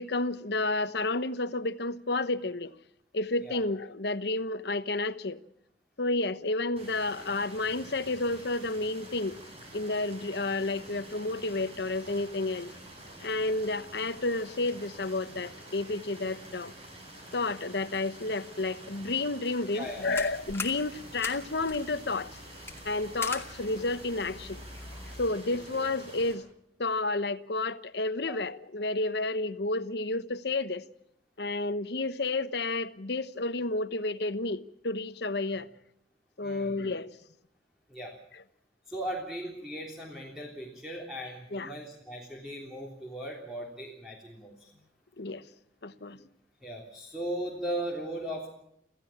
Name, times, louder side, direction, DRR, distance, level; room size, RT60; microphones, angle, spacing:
voice 1, 0.0-2.7 3.1-5.4 6.0-9.4 9.7-12.7 13.2-16.7 17.3-22.3 22.8-24.6 25.2-26.4 26.8-30.8 31.4-35.7 36.4-37.1 41.5-41.7 45.2-45.4 45.8-46.2, left 2 dB, 65° left, 1.0 m, -31 dB
sound 1, 6.8-26.3, right 1 dB, 35° right, 7.1 m, -48 dB
voice 2, 19.7-20.1 25.5-25.6 28.3-28.4 35.5-35.6 36.4-36.8 37.9-38.1 38.9-44.7 46.6-48.5, right 1 dB, 5° right, 3.4 m, -38 dB
sound 2, 19.8-25.3, left 3 dB, 15° left, 2.4 m, -42 dB
27.0 x 15.5 x 7.3 m
head